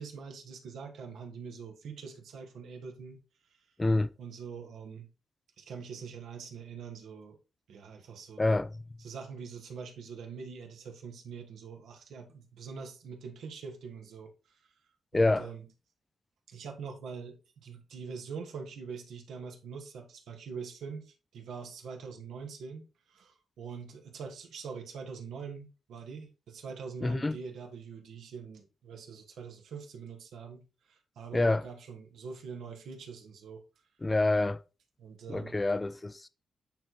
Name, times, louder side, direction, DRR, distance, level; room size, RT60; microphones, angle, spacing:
voice 1, 0.0-3.2 4.2-5.1 5.6-7.4 7.7-8.5 9.0-14.3 15.1-15.7 16.5-30.6 30.9-33.6 35.0-35.6, right 5 dB, 85° right, 1.3 m, -44 dB
voice 2, 3.8-4.1 8.4-8.7 15.1-15.5 27.0-27.4 31.3-31.7 34.0-34.6 35.3-36.3, left 2 dB, 20° left, 0.4 m, -27 dB
8.9 x 3.1 x 3.9 m
cardioid pair, 90°, 0 cm